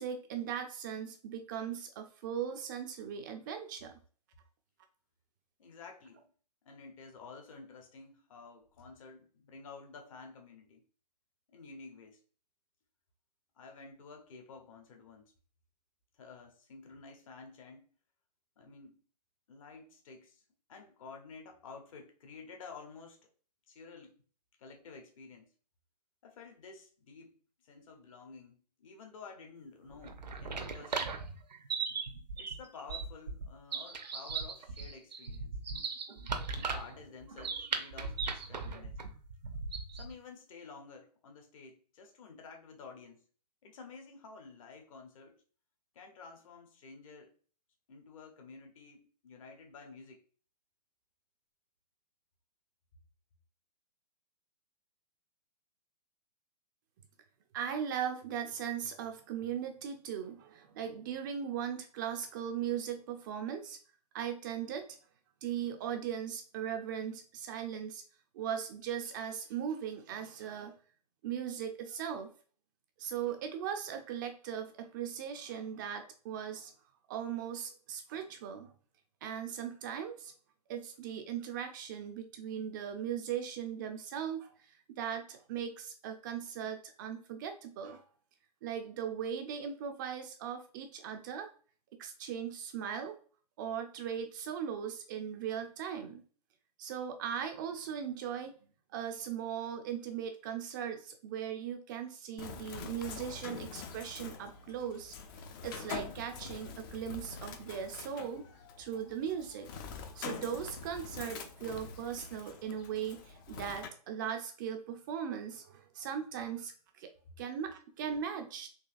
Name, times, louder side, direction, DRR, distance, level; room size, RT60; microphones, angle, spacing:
voice 1, 0.0-3.9 57.5-63.8 64.1-64.9 65.4-68.0 68.3-70.8 71.2-72.3 73.0-76.7 77.1-78.7 79.2-80.3 80.7-88.0 88.6-91.5 91.9-93.2 93.6-96.2 96.8-98.5 98.9-105.2 105.6-108.5 108.8-109.7 110.1-117.1 117.4-118.7, right 8 dB, 30° right, 0.4 m, -38 dB
voice 2, 5.6-6.3 6.6-10.8 11.5-12.2 13.6-15.3 16.2-17.9 18.6-19.0 19.5-20.4 20.7-23.3 23.7-24.2 24.6-25.5 26.2-27.4 27.6-31.2 32.4-35.6 36.5-39.1 39.9-43.2 43.6-45.4 45.9-47.3 47.9-50.2, left 4 dB, 50° left, 1.0 m, -51 dB
sound 1, 29.9-40.1, right 5 dB, 80° right, 0.7 m, -38 dB
Bird, 102.4-113.9, left 5 dB, 30° left, 0.4 m, -45 dB
4.0 x 2.7 x 2.5 m
figure-of-eight pair, 125°, 21 cm